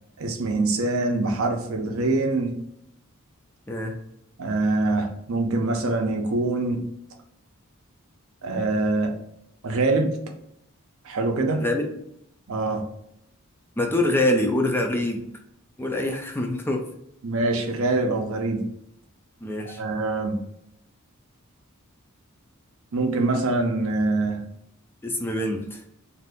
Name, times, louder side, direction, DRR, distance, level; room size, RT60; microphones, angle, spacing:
voice 1, 0.2-2.5 4.4-6.9 8.4-9.1 9.6-10.2 11.0-11.6 12.5-12.9 17.2-18.6 19.6-20.4 22.9-24.4, right 2 dB, 70° right, 4 dB, 0.6 m, -24 dB
voice 2, 3.7-4.0 11.6-11.9 13.8-15.2 15.8-16.9 19.4-19.8 25.0-25.8, left 1 dB, 10° left, 3 dB, 0.3 m, -25 dB
2.7 x 2.5 x 3.4 m, 0.77 s
head